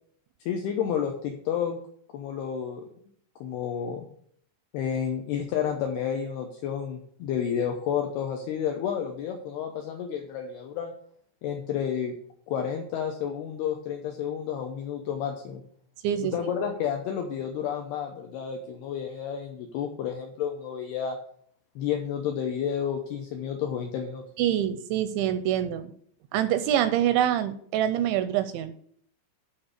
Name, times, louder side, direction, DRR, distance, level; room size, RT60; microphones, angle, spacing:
voice 1, 0.5-1.8 2.1-2.9 3.4-4.1 4.7-10.9 11.4-12.1 12.5-15.6 16.3-21.2 21.8-24.2, left 8 dB, 85° left, 3 dB, 2.3 m, -30 dB
voice 2, 24.4-25.9 26.3-28.7, right 11 dB, 85° right, 11 dB, 2.7 m, -25 dB
11.5 x 4.0 x 6.5 m, 0.63 s
omnidirectional pair, 5.6 m